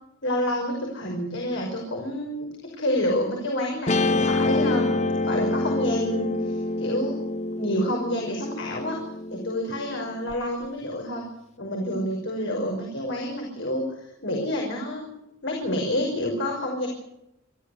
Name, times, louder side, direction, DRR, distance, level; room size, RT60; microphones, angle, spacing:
voice 1, 0.2-7.2 7.6-9.0 9.3-11.2 11.6-15.0 15.4-16.9, left 1 dB, 65° left, 0 dB, 5.7 m, -28 dB
Guitar, 3.9-10.3, left 2 dB, 35° left, 0.8 m, -27 dB
28.0 x 13.5 x 8.0 m, 0.85 s
head